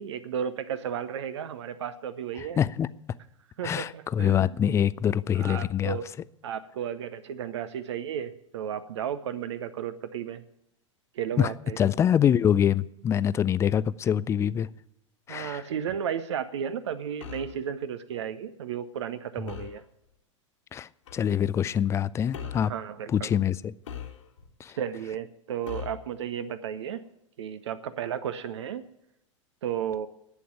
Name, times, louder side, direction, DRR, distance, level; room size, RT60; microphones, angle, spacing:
voice 1, 0.0-2.6 3.6-4.6 5.3-6.1 6.4-10.4 11.1-11.8 15.3-19.8 22.4-23.3 24.8-27.0 27.4-28.9 29.6-30.1, right 8 dB, 60° right, 0.8 m, -33 dB
voice 2, 2.6-2.9 3.6-6.0 11.4-11.5 11.8-14.7 15.3-15.6 20.7-22.7 23.1-23.6 24.6-24.7, left 9 dB, 15° left, 0.4 m, -25 dB
sound 1, 17.2-17.6 19.5-19.8 21.1-21.3 22.3-22.7 23.9-24.5 25.7-26.1, left 8 dB, 65° left, 1.9 m, -40 dB
11.5 x 8.5 x 9.0 m
figure-of-eight pair, 95°, 17 cm